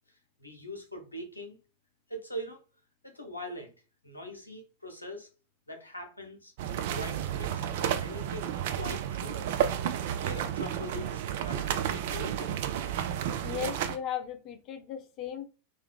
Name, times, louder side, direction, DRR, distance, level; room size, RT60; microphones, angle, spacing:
voice 1, 0.4-1.6 2.1-2.6 3.0-3.7 4.0-5.3 5.7-6.5 6.9-9.5 10.2-12.5, equal, 80° left, 0.7 m, -42 dB
sound 1, 6.6-14.0, right 10 dB, 50° right, 0.3 m, -32 dB
voice 2, 13.4-15.5, left 9 dB, 35° left, 0.5 m, -36 dB
2.6 x 2.2 x 3.4 m
figure-of-eight pair, 90°, 0 cm